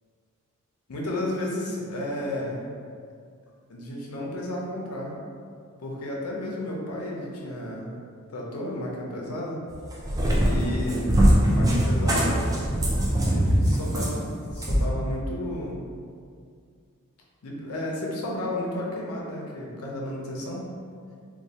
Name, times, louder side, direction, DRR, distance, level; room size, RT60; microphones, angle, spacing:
voice 1, 0.9-2.6 3.7-5.2 5.8-7.9 8.3-9.6 10.4-11.2 11.5-12.5 13.2-15.8 17.4-20.7, left 1 dB, 90° left, -2 dB, 0.5 m, -32 dB
Cat, 9.7-14.9, equal, 15° right, 0.3 m, -22 dB
3.1 x 2.2 x 2.7 m, 2.2 s
head